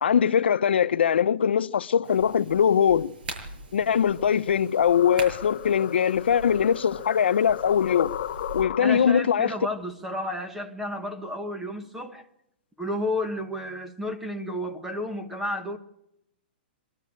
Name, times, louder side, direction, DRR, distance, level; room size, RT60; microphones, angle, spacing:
voice 1, 0.0-3.1 3.7-8.1 8.5-9.5, left 8 dB, 90° left, 0.8 m, -22 dB
sound 1, 2.0-8.6, right 2 dB, 65° right, 7.2 m, -42 dB
sound 2, 4.2-9.2, left 12 dB, 50° left, 0.7 m, -36 dB
voice 2, 8.8-12.2 12.8-15.8, left 1 dB, 5° right, 1.3 m, -32 dB
24.0 x 13.0 x 8.6 m
hypercardioid pair, 165°, 6 cm